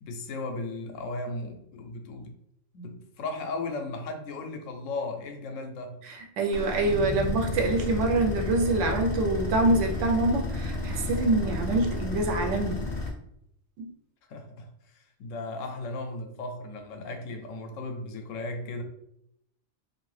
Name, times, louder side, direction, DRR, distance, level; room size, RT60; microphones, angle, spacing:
voice 1, 0.0-2.3 2.7-6.0 14.3-18.8, left 2 dB, 90° left, 1.0 m, -36 dB
voice 2, 6.1-12.8 13.8-13.9, right 2 dB, 75° right, 0.9 m, -25 dB
sound 1, 6.5-13.1, left 2 dB, 45° left, 0.6 m, -32 dB
2.6 x 2.5 x 3.2 m
omnidirectional pair, 1.3 m